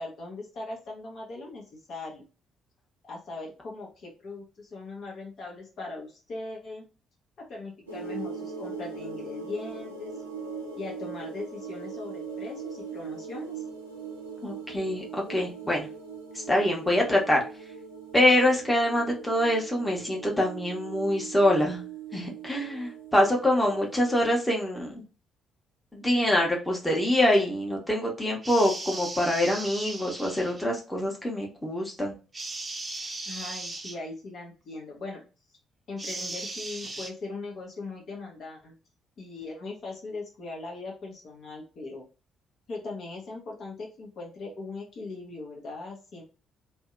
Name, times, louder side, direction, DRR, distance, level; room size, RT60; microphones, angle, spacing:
voice 1, 0.0-2.2 3.0-6.8 7.4-10.1 10.8-13.6 33.3-35.2 35.9-38.7 39.2-42.0 42.7-46.2, left 3 dB, 50° left, -1 dB, 0.8 m, -39 dB
sound 1, 7.9-24.4, right 5 dB, 80° right, 0.4 m, -40 dB
voice 2, 14.4-15.9 16.3-17.4 18.1-21.8 22.1-25.0 25.9-32.2, left 1 dB, 10° left, -1 dB, 0.9 m, -25 dB
sound 2, 28.4-30.6 32.3-34.0 36.0-37.1, right 2 dB, 25° right, 0.5 m, -37 dB
2.6 x 2.1 x 2.4 m, 0.34 s
figure-of-eight pair, 45°, 0 cm